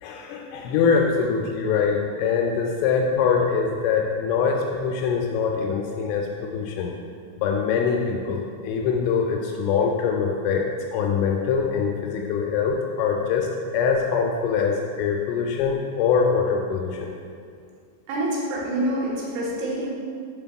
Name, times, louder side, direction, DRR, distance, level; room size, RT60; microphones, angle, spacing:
voice 1, 0.0-6.9 7.4-13.5 13.7-17.1, left 6 dB, 85° left, 0 dB, 2.9 m, -23 dB
voice 2, 18.1-19.9, right 1 dB, 80° right, -5 dB, 3.5 m, -26 dB
7.7 x 5.7 x 2.3 m, 2.2 s
omnidirectional pair, 5.9 m